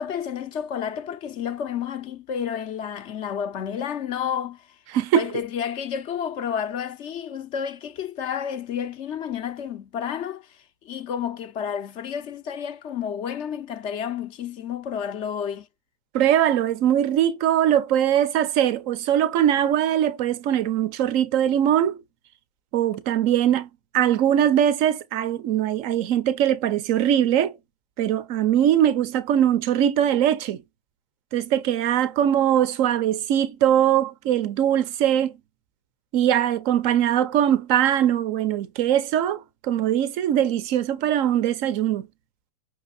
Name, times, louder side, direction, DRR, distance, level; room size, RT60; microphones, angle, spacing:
voice 1, 0.0-4.7 5.1-15.7, left 8 dB, 25° left, 0.5 m, -31 dB
voice 2, 4.9-5.3 16.1-22.0 22.7-23.7 23.9-27.5 28.0-30.6 31.3-35.3 36.1-42.1, right 10 dB, 30° right, 0.5 m, -21 dB
5.8 x 2.7 x 2.6 m
supercardioid pair, 160°, 21 cm